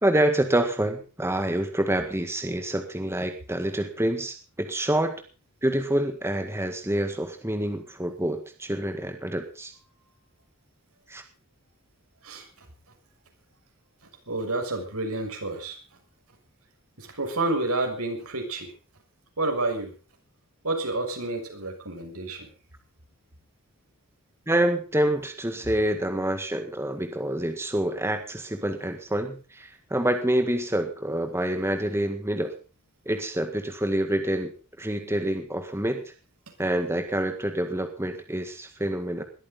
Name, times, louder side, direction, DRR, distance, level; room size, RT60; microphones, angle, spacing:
voice 1, 0.0-5.1 5.6-9.7 11.1-11.2 24.5-32.6 33.1-34.5 34.8-36.0 36.6-39.2, right 1 dB, 10° right, 6 dB, 1.7 m, -27 dB
voice 2, 14.3-15.8 17.0-18.7 19.4-19.9 20.6-22.5, right 2 dB, 80° right, 3 dB, 6.6 m, -29 dB
21.0 x 14.0 x 3.9 m, 0.35 s
head